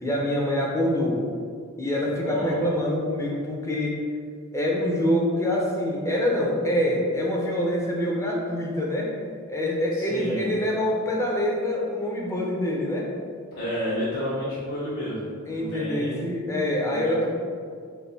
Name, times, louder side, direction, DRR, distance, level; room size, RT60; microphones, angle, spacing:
voice 1, 0.0-1.3 1.8-4.0 4.5-9.2 9.5-13.1 15.5-17.3, left 1 dB, 15° left, -2 dB, 0.5 m, -25 dB
voice 2, 2.1-2.6 10.0-10.4 13.5-16.3 16.8-17.3, equal, 55° left, -10 dB, 0.8 m, -31 dB
3.4 x 2.5 x 3.9 m, 2.1 s
head